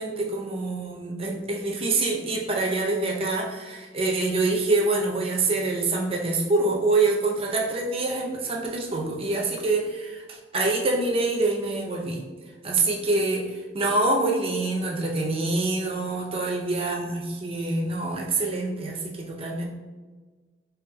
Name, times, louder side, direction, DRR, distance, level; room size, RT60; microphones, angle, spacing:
voice 1, 0.0-12.2 12.6-19.7, right 2 dB, 30° right, 0 dB, 0.6 m, -26 dB
4.5 x 3.3 x 2.2 m, 1.4 s
head